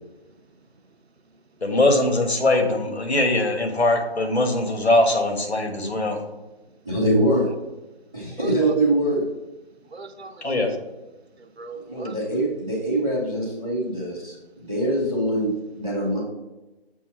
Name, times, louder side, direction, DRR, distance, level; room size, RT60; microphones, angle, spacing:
voice 1, 0.3-1.6 7.9-8.7 9.8-10.8 11.3-12.2 14.5-14.6, right 3 dB, 80° right, 7 dB, 0.8 m, -42 dB
voice 2, 1.6-6.2 10.4-10.7, left 2 dB, 90° left, 3 dB, 1.5 m, -21 dB
voice 3, 6.8-7.5 8.1-9.2 11.8-15.5 15.8-16.2, right 1 dB, 5° right, -19 dB, 0.5 m, -23 dB
7.0 x 2.8 x 5.5 m, 1.1 s
figure-of-eight pair, 160°, 32 cm